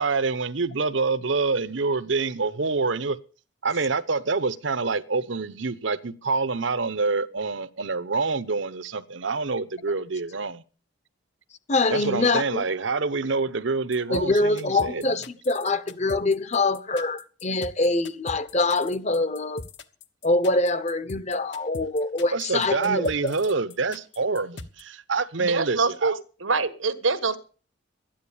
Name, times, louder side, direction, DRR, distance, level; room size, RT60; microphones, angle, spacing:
voice 1, 0.0-3.2 3.6-10.6 11.9-15.2 22.3-26.2, right 4 dB, 70° right, 0.9 m, -26 dB
voice 2, 11.7-12.6 14.1-19.6 20.2-23.3, left 2 dB, 35° left, 0.9 m, -24 dB
sound 1, 13.9-24.8, left 3 dB, 60° left, 1.2 m, -41 dB
voice 3, 25.4-26.1 26.4-27.4, right 4 dB, 90° right, 1.4 m, -25 dB
13.0 x 10.5 x 7.1 m
head